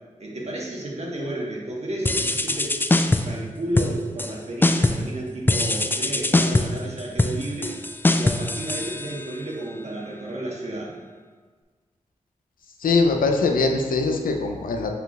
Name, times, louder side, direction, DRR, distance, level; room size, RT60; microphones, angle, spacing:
voice 1, 0.2-2.8 3.2-7.7 8.1-10.9, right 1 dB, 50° right, -3 dB, 1.2 m, -32 dB
sound 1, 2.1-3.4 3.8-4.3 4.6-5.1 5.5-9.5, left 2 dB, 15° left, 0.3 m, -22 dB
voice 2, 12.8-14.9, left 3 dB, 85° left, 3 dB, 0.5 m, -22 dB
5.7 x 3.7 x 2.4 m, 1.4 s
cardioid pair, 45°, 14 cm